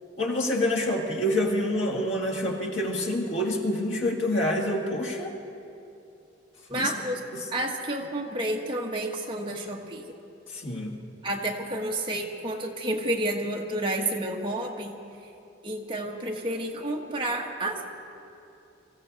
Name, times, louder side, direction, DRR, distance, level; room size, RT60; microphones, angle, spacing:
voice 1, 0.2-5.4 6.7-6.9 7.3-7.4 10.5-11.0, left 1 dB, 80° left, 0 dB, 2.1 m, -27 dB
voice 2, 6.7-7.2 7.5-10.0 11.2-15.0 15.6-17.8, right 1 dB, 25° right, 0 dB, 1.4 m, -30 dB
24.5 x 15.0 x 4.1 m, 2.7 s
head